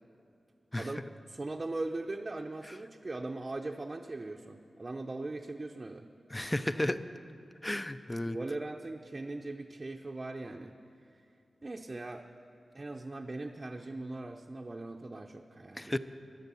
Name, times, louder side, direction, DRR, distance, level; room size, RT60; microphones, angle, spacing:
voice 1, 0.7-6.1 8.3-10.7 11.6-12.3 12.7-16.0, right 2 dB, 30° right, 2 dB, 0.6 m, -40 dB
voice 2, 6.3-7.0 7.6-8.4 15.8-16.0, left 1 dB, 15° left, 12 dB, 0.4 m, -32 dB
21.0 x 8.0 x 6.9 m, 2.7 s
wide cardioid pair, 115°, 0 cm